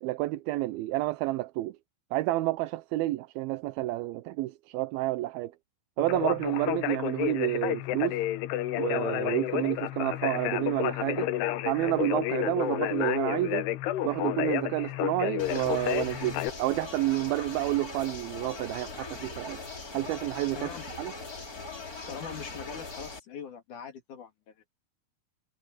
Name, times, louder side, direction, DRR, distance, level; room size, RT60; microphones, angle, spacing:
voice 1, 0.0-1.8 2.1-5.5 6.0-8.2 8.8-11.3 11.6-13.7 14.0-19.6 19.9-20.7 21.0-21.1, right 17 dB, 80° right, 2.4 m, -29 dB
Conversation, 6.0-16.5, left 13 dB, 85° left, 3.1 m, -30 dB
sound 1, 15.4-23.2, left 3 dB, 25° left, 3.0 m, -40 dB
voice 2, 22.1-24.7, left 7 dB, 55° left, 3.6 m, -42 dB
omnidirectional pair, 4.6 m